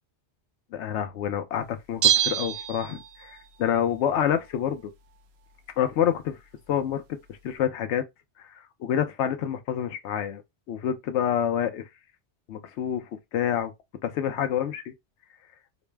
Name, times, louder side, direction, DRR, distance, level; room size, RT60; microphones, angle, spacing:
voice 1, 0.7-4.9 5.8-6.4 6.7-7.0 7.3-8.0 8.6-10.4 10.7-11.9 12.5-13.7 14.0-14.8, left 9 dB, 75° left, 0.9 m, -27 dB
Bell, 2.0-3.4 3.7-3.8, right 10 dB, 65° right, 0.8 m, -25 dB
4.0 x 2.0 x 3.3 m
omnidirectional pair, 1.2 m